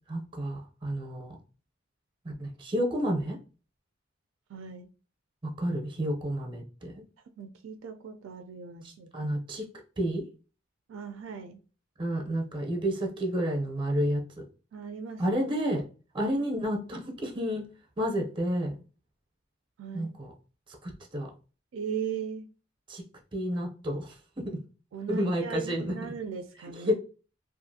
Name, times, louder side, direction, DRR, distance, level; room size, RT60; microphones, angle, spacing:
voice 1, 0.1-1.4 2.2-3.4 5.4-7.0 9.1-9.7 10.0-10.3 12.0-14.4 15.2-15.8 16.1-17.6 18.0-18.8 19.9-20.3 20.8-21.3 22.9-23.0 23.3-24.6 25.1-26.1 26.6-26.9, equal, 25° right, 0.6 m, -30 dB
voice 2, 4.5-4.9 7.4-9.3 10.9-11.6 14.7-15.2 19.8-20.1 21.7-22.5 24.9-26.9, right 6 dB, 70° right, 0.3 m, -38 dB
2.4 x 2.4 x 2.7 m
head